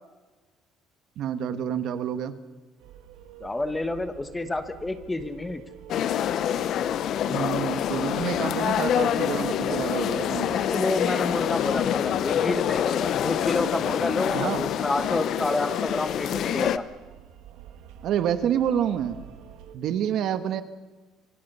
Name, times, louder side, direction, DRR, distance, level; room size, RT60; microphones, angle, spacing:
voice 1, 1.2-2.4 7.3-10.6 14.3-14.7 18.0-19.3 19.7-20.6, right 9 dB, 55° right, 11 dB, 1.4 m, -28 dB
sound 1, 2.8-19.7, right 9 dB, 90° right, 2.1 m, -48 dB
voice 2, 3.4-5.6 10.6-16.8, left 2 dB, 10° left, 10 dB, 1.2 m, -29 dB
sound 2, 5.9-16.8, left 10 dB, 50° left, 0.8 m, -26 dB
26.0 x 25.5 x 5.5 m, 1.3 s
cardioid pair, 160°, 0 cm